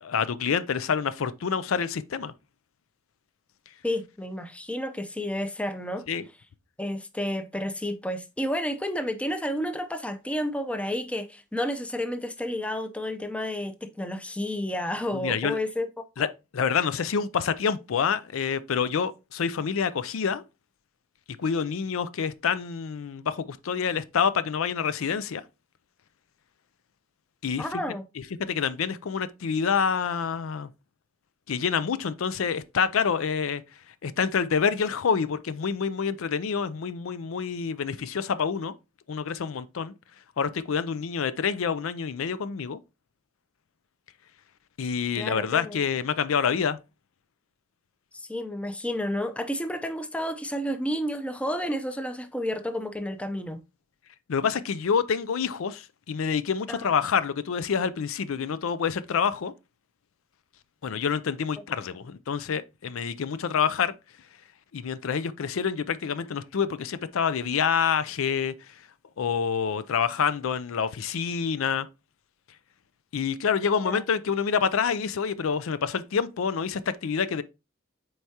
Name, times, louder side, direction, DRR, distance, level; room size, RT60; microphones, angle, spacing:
voice 1, 0.0-2.3 6.1-6.2 15.2-15.6 16.2-16.3 16.5-20.4 21.4-25.4 27.4-27.7 28.4-30.7 31.5-33.6 34.0-38.7 39.1-39.9 40.4-42.8 44.8-46.8 54.3-59.5 60.8-63.9 64.7-68.5 69.2-71.9 73.1-77.4, left 6 dB, 70° left, 0.4 m, -27 dB
voice 2, 3.8-6.0 6.8-16.3 27.6-28.0 45.2-45.8 48.1-53.6 56.7-56.9 73.8-74.0, left 1 dB, 5° left, 0.6 m, -31 dB
7.9 x 4.6 x 2.8 m
head